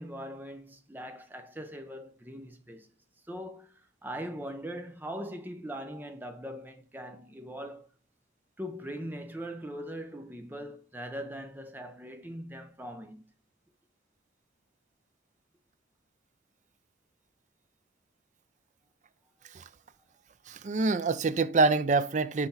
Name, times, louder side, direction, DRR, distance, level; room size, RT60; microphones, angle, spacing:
voice 1, 0.0-2.9 3.3-7.9 8.6-13.2, equal, 10° right, 0.7 m, -41 dB
voice 2, 20.5-22.5, right 3 dB, 40° right, 0.4 m, -26 dB
5.8 x 4.5 x 4.1 m
head